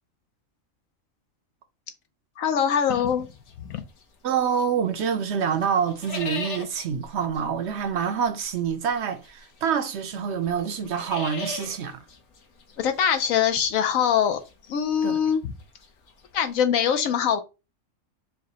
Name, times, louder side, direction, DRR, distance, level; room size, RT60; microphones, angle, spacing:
voice 1, 2.4-3.3 3.6-3.8 12.8-14.4 14.7-15.5 16.3-17.4, left 8 dB, 85° left, 1.1 m, -23 dB
sound 1, 2.8-4.8 5.1-16.6, left 3 dB, 65° left, 1.1 m, -40 dB
voice 2, 4.2-12.0 15.0-15.2, right 7 dB, 65° right, 0.8 m, -26 dB
4.6 x 2.2 x 4.0 m
omnidirectional pair, 1.4 m